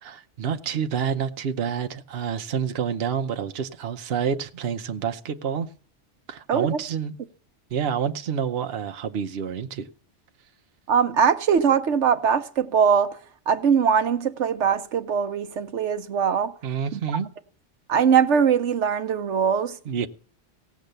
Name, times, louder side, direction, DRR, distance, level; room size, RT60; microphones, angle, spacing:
voice 1, 0.0-5.7 6.3-7.2 7.7-9.9 16.6-17.3 19.8-20.1, right 7 dB, 60° right, 1.0 m, -28 dB
voice 2, 10.9-13.2 13.5-16.5 16.9-17.0 17.9-19.8, right 7 dB, 85° right, 1.2 m, -21 dB
17.0 x 7.2 x 6.7 m
omnidirectional pair, 1.2 m